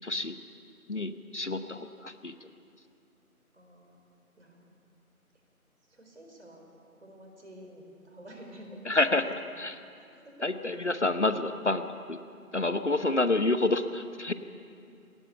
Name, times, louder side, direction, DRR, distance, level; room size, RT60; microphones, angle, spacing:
voice 1, 0.0-0.4 0.9-2.5 8.9-9.8 10.4-12.2 12.5-14.3, left 2 dB, 50° left, 10 dB, 0.9 m, -28 dB
voice 2, 3.5-4.0 4.4-4.7 5.8-6.6 6.9-9.2 9.9-10.5, right 1 dB, 50° right, 2 dB, 4.5 m, -50 dB
20.5 x 19.0 x 7.0 m, 2.5 s
figure-of-eight pair, 175°, 44 cm